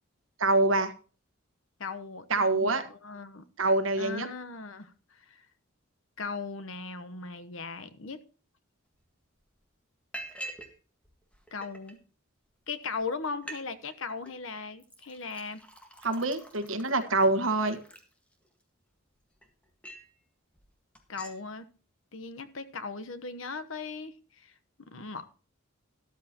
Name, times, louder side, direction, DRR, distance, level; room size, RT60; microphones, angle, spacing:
voice 1, 0.4-0.9 2.3-2.8 3.6-4.3 16.0-17.8, right 2 dB, 75° right, 1.5 m, -25 dB
voice 2, 1.8-3.4 4.0-5.5 6.2-8.2 11.5-12.0 12.7-15.6 21.1-21.7 22.1-24.5 24.8-25.3, left 4 dB, 70° left, 1.1 m, -38 dB
Liquid, 9.0-9.1 9.4-9.7 10.1-10.7 11.0-11.9 12.6-12.7 13.0-13.1 13.3-13.6 13.9-14.3 14.8-18.6 19.1-20.1 20.5-20.7 21.0-21.4, right 1 dB, 5° left, 1.6 m, -46 dB
13.0 x 12.5 x 3.0 m
head